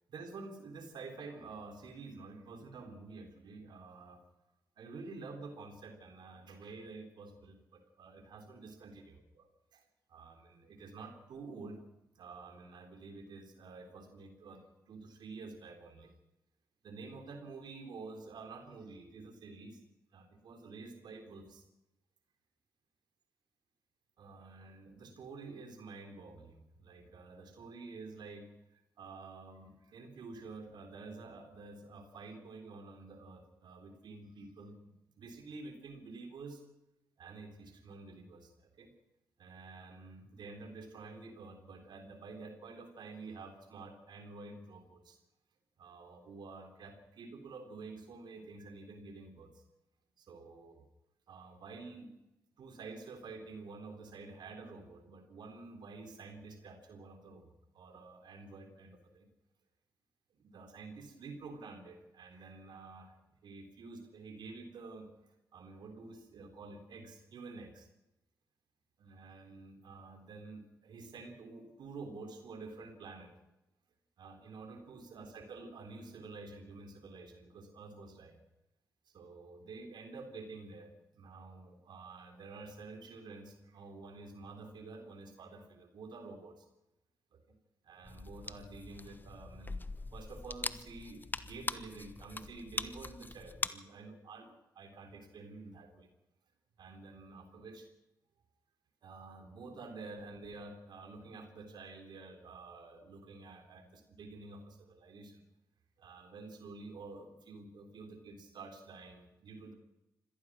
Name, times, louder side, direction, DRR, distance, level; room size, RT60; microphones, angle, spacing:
voice 1, 0.1-4.2 4.8-8.9 9.3-9.5 9.7-11.8 12.2-16.1 16.8-19.8 20.1-21.6 24.2-36.6 37.2-38.9 39.4-45.2 45.8-49.6 50.2-50.8 51.3-52.1 52.6-59.3 60.4-63.1 63.4-67.9 69.0-73.3 74.2-78.4 79.1-86.7 87.3-87.6 87.8-96.1 96.8-97.9 99.0-105.4 106.0-109.7, right 3 dB, 70° right, 6 dB, 3.8 m, -49 dB
sound 1, 88.0-93.7, left 3 dB, 25° left, 1.1 m, -42 dB
25.5 x 18.0 x 6.2 m, 0.94 s
supercardioid pair, 55°, 8 cm